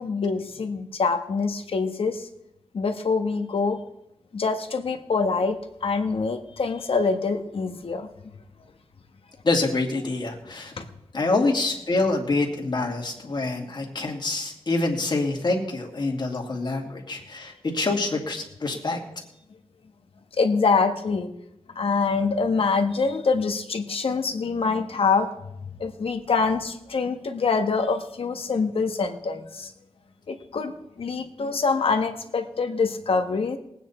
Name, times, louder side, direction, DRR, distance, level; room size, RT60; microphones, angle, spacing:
voice 1, 0.0-2.3 2.7-3.8 4.3-8.1 20.4-21.3 21.7-25.3 25.8-29.7 30.3-33.6, left 4 dB, 70° left, 6 dB, 1.5 m, -25 dB
voice 2, 9.4-10.7 11.1-19.0, left 3 dB, 50° left, 1 dB, 2.7 m, -26 dB
20.0 x 9.2 x 4.4 m, 0.81 s
wide cardioid pair, 95°, 10 cm